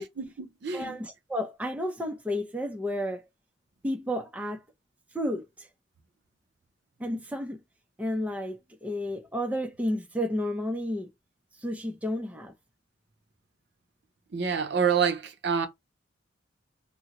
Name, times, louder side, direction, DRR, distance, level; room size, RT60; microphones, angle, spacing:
voice 1, 0.2-1.0 14.3-15.7, right 6 dB, 65° right, 0.5 m, -27 dB
voice 2, 0.7-3.2 3.8-4.6 5.1-5.7 7.0-7.6 8.0-11.1 11.6-12.5, left 1 dB, 5° right, 0.4 m, -31 dB
3.7 x 2.0 x 2.9 m
head